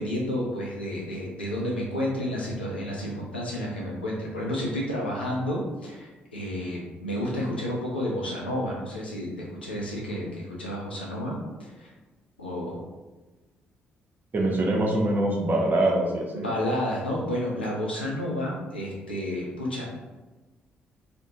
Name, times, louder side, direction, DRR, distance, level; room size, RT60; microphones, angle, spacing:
voice 1, 0.0-11.9 12.4-12.8 16.3-19.9, left 1 dB, 85° left, -4 dB, 0.5 m, -31 dB
voice 2, 14.3-16.4, right 1 dB, 35° right, -1 dB, 0.6 m, -24 dB
2.5 x 2.0 x 2.8 m, 1.2 s
figure-of-eight pair, 45°, 5 cm